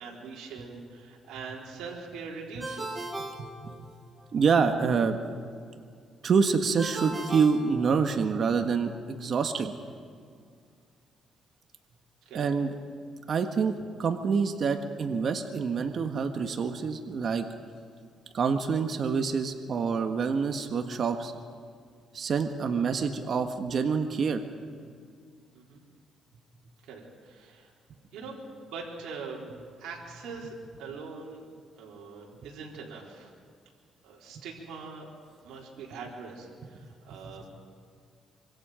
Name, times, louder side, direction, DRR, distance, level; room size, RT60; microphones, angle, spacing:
voice 1, 0.0-3.1 12.3-12.5 25.5-25.8 26.8-27.7 28.1-28.4 28.6-29.5 29.8-31.5 31.7-33.3 34.0-35.1 35.4-37.5, right 4 dB, 85° right, -3 dB, 4.1 m, -42 dB
Ringtone, 2.6-4.3 6.8-8.4, right 2 dB, 15° right, 4.4 m, -38 dB
voice 2, 3.4-3.7 4.3-5.2 6.2-9.8 12.3-12.7 13.3-17.5 18.3-21.3 22.1-24.4, right 5 dB, 55° right, 5 dB, 1.6 m, -27 dB
25.5 x 25.5 x 5.1 m, 2.1 s
cardioid pair, 90°, 0 cm